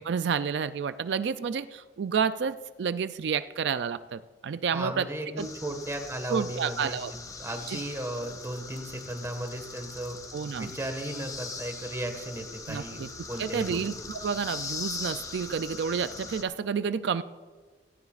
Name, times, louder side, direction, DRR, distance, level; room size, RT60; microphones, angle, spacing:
voice 1, 0.0-5.1 5.4-5.5 6.3-7.1 7.7-7.8 10.3-10.7 12.7-13.1 13.4-17.2, right 6 dB, 70° right, 12 dB, 0.4 m, -30 dB
voice 2, 4.7-10.2 10.6-14.1, right 1 dB, 15° right, 5 dB, 1.5 m, -36 dB
sound 1, 5.4-16.4, left 4 dB, 20° left, 0.8 m, -41 dB
16.5 x 15.5 x 2.4 m, 1.5 s
head